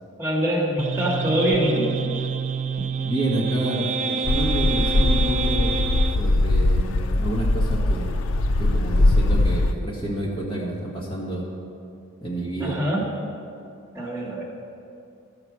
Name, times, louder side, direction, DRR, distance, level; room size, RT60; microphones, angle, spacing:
voice 1, 0.2-1.9 12.6-13.0 13.9-14.4, equal, 15° right, -4 dB, 1.7 m, -24 dB
sound 1, 0.8-6.2, right 5 dB, 35° right, 0.4 m, -27 dB
voice 2, 3.0-5.8 6.2-8.2 8.6-11.4 12.2-12.8, right 1 dB, 25° left, -4 dB, 1.5 m, -29 dB
sound 2, 4.2-9.7, left 2 dB, 85° left, 0.5 m, -21 dB
13.5 x 4.9 x 6.1 m, 2.5 s
head